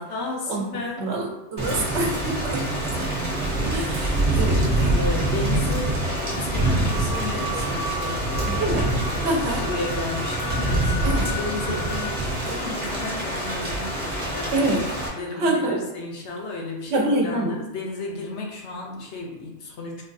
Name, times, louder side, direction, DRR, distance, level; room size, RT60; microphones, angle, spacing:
voice 1, 0.1-1.0 4.2-9.3 9.6-14.7 15.1-20.0, left 3 dB, 70° left, 0 dB, 1.0 m, -33 dB
voice 2, 1.0-3.1 3.4-4.6 8.5-8.9 9.2-9.6 11.0-11.3 14.5-14.9 15.3-15.8 16.9-17.6, right 1 dB, 70° right, 1 dB, 0.9 m, -26 dB
Thunder / Rain, 1.6-15.1, right 1 dB, 35° right, 0.9 m, -25 dB
sound 1, 5.3-12.1, left 1 dB, 55° left, 0.7 m, -35 dB
4.4 x 2.3 x 2.6 m, 1.0 s
omnidirectional pair, 1.2 m